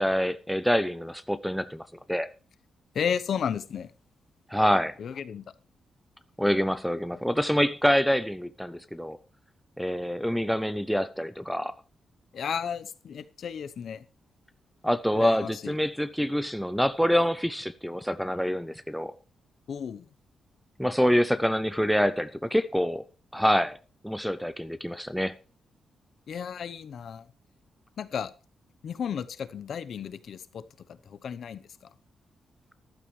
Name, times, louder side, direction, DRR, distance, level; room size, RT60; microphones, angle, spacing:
voice 1, 0.0-2.3 4.5-4.9 6.4-9.2 9.8-11.7 14.8-19.2 20.8-23.0 23.3-23.8 24.0-25.3, equal, ahead, 0.5 m, -26 dB
voice 2, 2.9-3.9 5.0-5.5 12.3-14.0 15.1-15.7 19.7-20.1 26.3-27.3 28.0-28.3 28.8-30.6 31.1-31.6, left 7 dB, 55° left, 0.8 m, -33 dB
14.0 x 12.0 x 3.2 m
wide cardioid pair, 170°, 0 cm